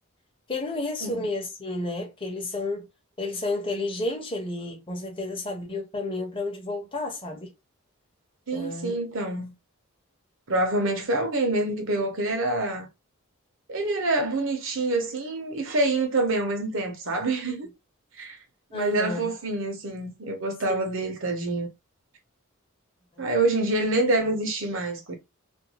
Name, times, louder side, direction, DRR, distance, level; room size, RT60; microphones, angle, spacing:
voice 1, 0.5-2.9 3.2-7.5 8.5-8.9 18.7-19.3 20.7-21.0 23.2-23.3, left 2 dB, 25° left, 0.8 m, -31 dB
voice 2, 8.5-9.6 10.5-12.9 13.7-17.7 18.2-18.4 18.7-21.7 23.2-25.2, right 2 dB, 65° right, 0.8 m, -26 dB
2.5 x 2.2 x 2.8 m
head